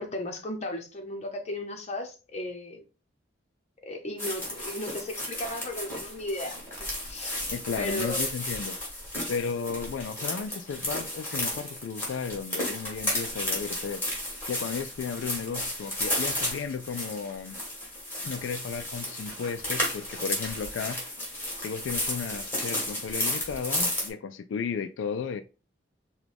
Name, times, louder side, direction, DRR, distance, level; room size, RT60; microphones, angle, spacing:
voice 1, 0.0-2.8 3.8-6.6 7.1-7.5 7.8-8.3, left 1 dB, 35° left, 0.9 m, -35 dB
sound 1, 4.2-24.1, left 1 dB, 10° left, 2.1 m, -33 dB
voice 2, 7.5-8.7 9.3-14.0 14.5-17.6 18.2-21.0 21.6-25.4, left 6 dB, 85° left, 0.3 m, -34 dB
5.8 x 2.3 x 3.3 m
head